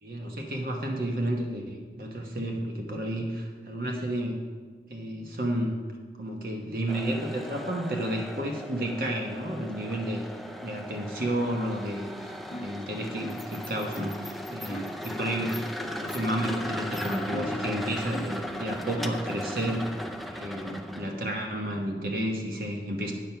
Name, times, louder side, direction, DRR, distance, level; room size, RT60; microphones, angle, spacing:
voice 1, 0.0-4.4 4.9-5.7 6.2-10.2 10.6-15.6 15.9-19.9 20.3-23.1, right 1 dB, 55° right, 1 dB, 1.1 m, -31 dB
sound 1, 6.9-21.2, left 1 dB, ahead, 0.4 m, -37 dB
sound 2, 12.5-12.8 13.2-13.5 14.0-14.2 14.7-15.0 16.4-16.8 17.3-17.7 18.1-18.5 19.0-19.3, right 1 dB, 40° left, 0.6 m, -39 dB
9.1 x 6.5 x 5.6 m, 1.5 s
head